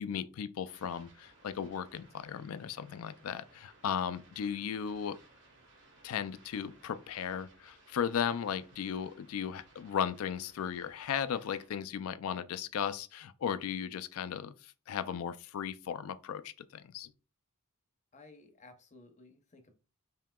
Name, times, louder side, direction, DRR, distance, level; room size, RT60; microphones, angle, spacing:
voice 1, 0.0-5.2 6.0-17.1, left 8 dB, 70° left, 0.3 m, -36 dB
sound 1, 0.6-11.7, right 2 dB, 55° right, 1.5 m, -61 dB
voice 2, 18.1-19.7, left 2 dB, 35° left, 0.7 m, -56 dB
5.5 x 2.8 x 2.2 m
head